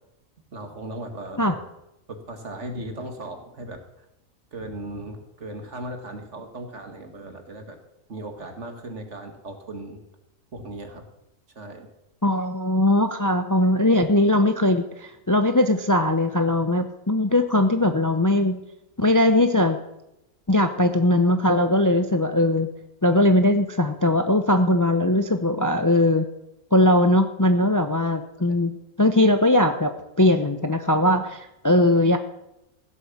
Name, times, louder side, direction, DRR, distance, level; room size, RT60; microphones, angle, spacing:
voice 1, 0.5-1.5 2.1-3.8 4.5-7.8 8.1-10.0 10.5-11.0 11.6-11.9, right 1 dB, 60° right, 5 dB, 2.2 m, -37 dB
voice 2, 12.2-18.6 19.0-19.8 20.5-22.7 23.0-26.2 26.7-28.7 29.0-29.9 30.2-32.2, left 1 dB, 20° left, 8 dB, 0.6 m, -20 dB
15.5 x 7.8 x 7.3 m, 0.87 s
omnidirectional pair, 1.4 m